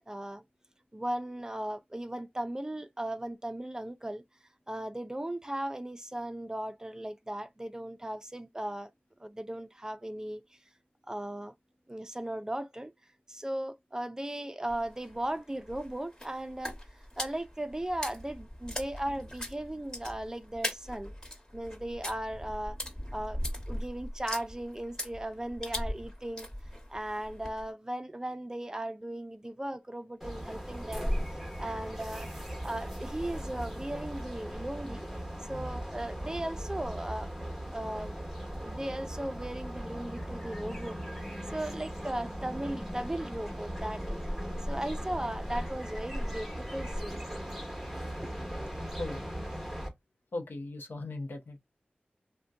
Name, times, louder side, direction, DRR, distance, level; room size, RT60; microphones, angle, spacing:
voice 1, 0.1-0.4 0.9-4.2 4.7-8.9 9.2-10.4 11.1-11.5 11.9-12.9 13.3-16.8 17.2-21.1 21.5-22.8 23.1-23.4 23.7-26.5 26.9-31.1 31.6-32.3 32.6-35.1 35.5-37.3 37.7-38.1 38.6-41.0 41.5-44.2 44.6-47.2 48.2-48.3, right 1 dB, 20° right, 0.4 m, -37 dB
sound 1, 14.7-27.7, left 1 dB, 20° left, 1.2 m, -40 dB
sound 2, 30.2-49.9, equal, ahead, 1.0 m, -38 dB
voice 2, 49.0-49.3 50.3-51.6, left 2 dB, 75° left, 0.7 m, -38 dB
2.6 x 2.1 x 3.4 m
wide cardioid pair, 55°, 3 cm